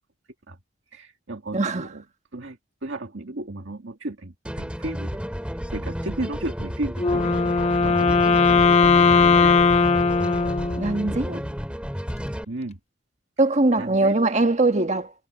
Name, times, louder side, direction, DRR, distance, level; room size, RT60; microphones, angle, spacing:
voice 1, 0.9-2.0 2.3-9.7 12.5-12.8 13.8-14.2, right 2 dB, 70° right, 1.8 m, -35 dB
voice 2, 1.5-1.8 10.8-11.4 13.4-15.1, right 2 dB, 35° right, 1.6 m, -21 dB
sound 1, 4.4-12.4, equal, 5° right, 4.0 m, -31 dB
Wind instrument woodwind instrument, 7.0-11.2, left 4 dB, 35° left, 0.6 m, -19 dB
head